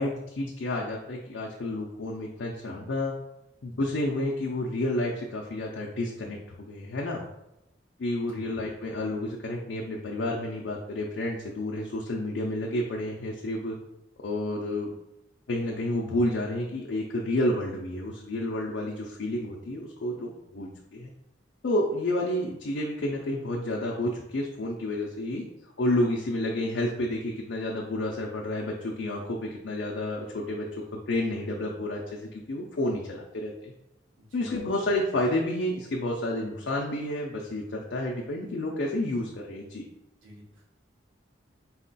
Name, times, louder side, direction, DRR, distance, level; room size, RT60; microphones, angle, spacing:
voice 1, 0.0-3.1 3.6-7.3 8.0-13.8 14.2-14.9 15.5-21.1 21.6-25.4 25.8-30.7 30.9-33.7 34.3-39.9, left 1 dB, 65° left, -2 dB, 0.5 m, -30 dB
voice 2, 34.2-34.5 40.2-40.7, left 1 dB, 90° right, -2 dB, 1.1 m, -49 dB
4.1 x 2.2 x 3.9 m, 0.89 s
head